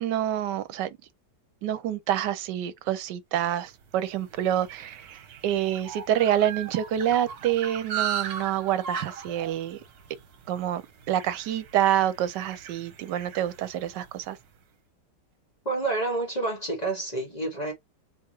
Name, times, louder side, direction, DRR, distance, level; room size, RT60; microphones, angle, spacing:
voice 1, 0.0-1.0 1.6-9.8 10.5-10.8 11.1-14.4, right 11 dB, 85° right, 1.2 m, -27 dB
sound 1, 3.7-14.3, right 8 dB, 65° right, 1.4 m, -38 dB
voice 2, 15.6-17.7, right 3 dB, 25° left, 1.5 m, -28 dB
4.2 x 3.5 x 2.9 m
omnidirectional pair, 1.9 m